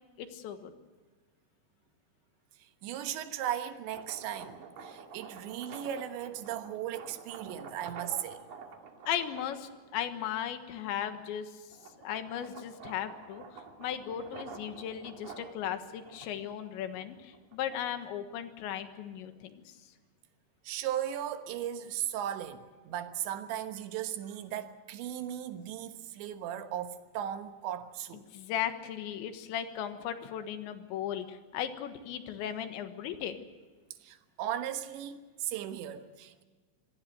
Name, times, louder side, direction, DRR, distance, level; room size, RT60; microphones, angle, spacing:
voice 1, 0.2-0.7 9.1-11.6 12.0-19.7 28.1-33.4, left 10 dB, 90° left, 3.7 m, -37 dB
voice 2, 2.8-8.5 20.7-28.2 34.0-36.4, right 11 dB, 80° right, 3.6 m, -37 dB
sound 1, 3.8-10.4 10.9-18.1, right 5 dB, 50° right, 3.3 m, -49 dB
26.0 x 19.5 x 6.7 m
omnidirectional pair, 5.1 m